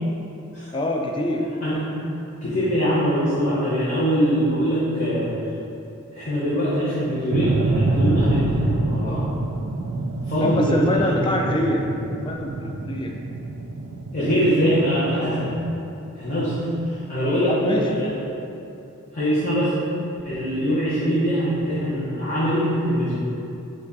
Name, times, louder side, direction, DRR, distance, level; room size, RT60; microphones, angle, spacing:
voice 1, 0.7-1.5 10.4-11.9 12.3-13.1 17.5-17.9, left 1 dB, 20° left, 1 dB, 0.3 m, -25 dB
voice 2, 2.4-5.3 6.1-9.2 10.3-11.3 14.1-15.5 16.1-18.2 19.1-19.7 20.2-23.1, equal, 40° left, -12 dB, 0.9 m, -22 dB
sound 1, 7.3-15.5, right 2 dB, 70° right, 0.3 m, -26 dB
4.7 x 2.3 x 4.0 m, 2.7 s
head